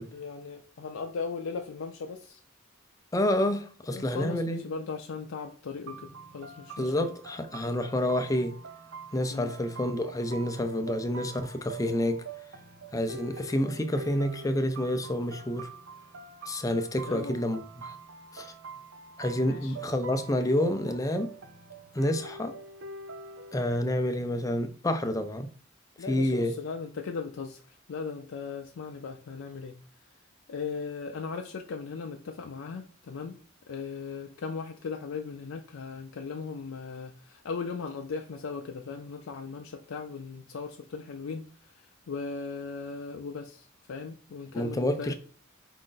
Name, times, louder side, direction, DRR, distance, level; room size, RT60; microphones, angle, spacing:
voice 1, 0.1-2.4 3.9-7.1 9.3-9.5 17.0-17.4 19.4-19.8 26.0-27.6 27.9-29.8 30.5-33.4 33.7-41.5 41.7-45.1, left 5 dB, 80° left, 0.4 m, -38 dB
voice 2, 3.1-4.6 6.8-8.5 9.1-12.2 12.9-15.7 16.5-17.9 18.3-18.5 19.2-21.3 21.9-22.5 23.5-25.5 26.1-26.5 44.5-45.1, left 1 dB, 15° left, 0.5 m, -28 dB
sound 1, 5.9-23.6, right 3 dB, 70° right, 0.6 m, -45 dB
4.9 x 2.6 x 3.8 m
head